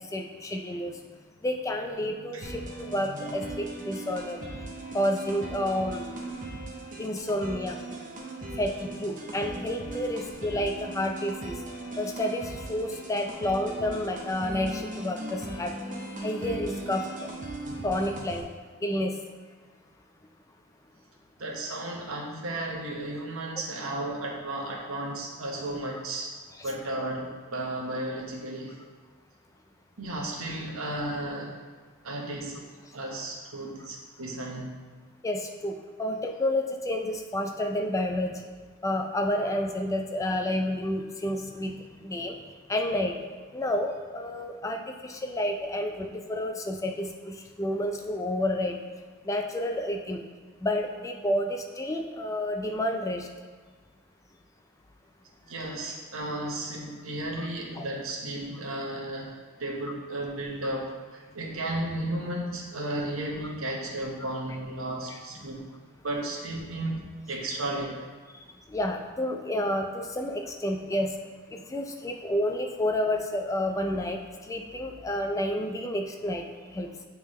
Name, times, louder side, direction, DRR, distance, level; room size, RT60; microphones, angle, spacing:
voice 1, 0.1-0.9 1.4-4.4 4.9-6.0 7.0-7.8 8.6-11.6 12.0-12.4 12.7-15.7 16.2-17.3 17.8-18.5 18.8-19.2 35.2-38.4 38.8-41.7 42.0-42.3 42.7-43.2 43.5-48.8 49.3-50.2 50.6-53.3 57.8-57.9 68.7-71.1 71.5-74.2 74.5-76.4 76.7-76.9, left 1 dB, 15° left, 3 dB, 0.3 m, -30 dB
sound 1, 2.4-18.4, right 1 dB, 40° right, 0.8 m, -38 dB
voice 2, 21.4-26.3 26.6-28.8 30.0-31.6 32.0-32.7 32.9-34.7 55.5-65.7 66.0-68.1, right 1 dB, 75° right, -1 dB, 1.1 m, -34 dB
9.1 x 3.5 x 3.2 m, 1.5 s
head